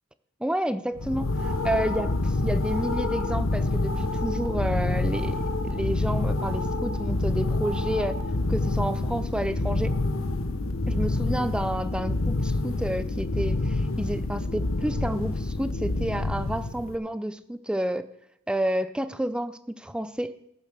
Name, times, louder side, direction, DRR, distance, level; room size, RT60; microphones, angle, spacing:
voice 1, 0.4-8.2 8.5-9.9 10.9-18.1 18.5-20.3, right 1 dB, 5° right, 12 dB, 0.5 m, -30 dB
sound 1, 1.0-17.0, left 2 dB, 75° left, 0.9 m, -27 dB
13.0 x 7.3 x 6.6 m, 0.79 s
head